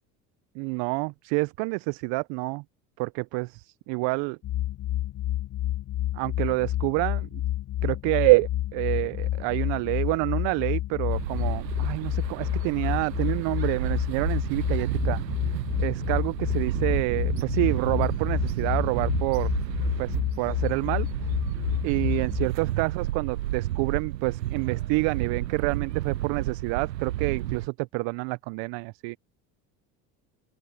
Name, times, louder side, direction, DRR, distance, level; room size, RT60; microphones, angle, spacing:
voice 1, 0.5-2.6 3.0-4.4 6.1-7.4 7.8-15.2 15.8-19.5 20.0-21.1 21.8-29.2, right 27 dB, 60° right, 1.0 m, -27 dB
sound 1, 4.4-22.5, left 14 dB, 35° left, 0.9 m, -29 dB
sound 2, 11.1-27.7, right 14 dB, 90° right, 0.8 m, -31 dB
open air
hypercardioid pair, 70°, 48 cm